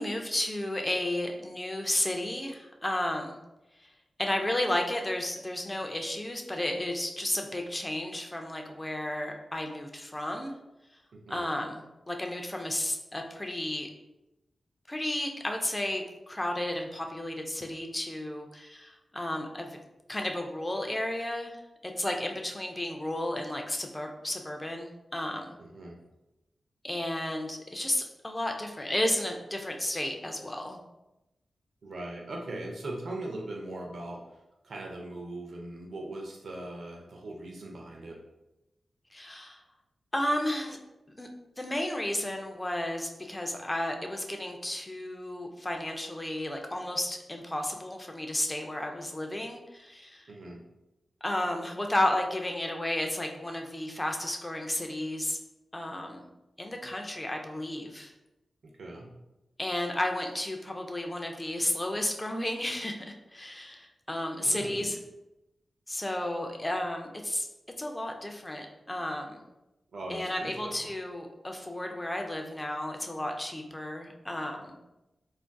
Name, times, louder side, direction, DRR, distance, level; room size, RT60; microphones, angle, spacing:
voice 1, 0.0-3.4 3.8-3.9 4.2-10.6 11.3-13.9 14.9-19.8 20.1-25.6 26.8-30.8 39.1-39.6 40.1-40.8 41.2-41.3 41.6-50.3 51.2-55.4 55.7-56.3 56.6-58.1 59.6-65.0 65.9-67.5 67.8-69.4 70.1-74.8, left 1 dB, 15° left, 2 dB, 0.3 m, -33 dB
voice 2, 11.1-11.4 25.6-25.9 31.8-34.4 34.6-38.2 50.3-50.6 58.8-59.1 64.4-65.0 69.9-70.9, right 2 dB, 70° right, -1 dB, 0.5 m, -40 dB
3.5 x 2.5 x 2.2 m, 0.95 s
wide cardioid pair, 150°, 0 cm